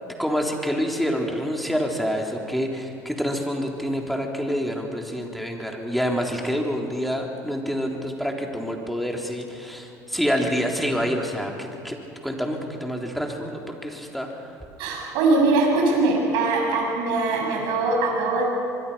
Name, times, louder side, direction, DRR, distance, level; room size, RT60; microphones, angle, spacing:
voice 1, 0.0-12.0 12.2-14.5, equal, ahead, 1 dB, 3.6 m, -27 dB
voice 2, 14.8-18.4, right 3 dB, 70° right, -1 dB, 6.8 m, -22 dB
24.5 x 22.0 x 5.7 m, 2.5 s
hypercardioid pair, 75°, 9 cm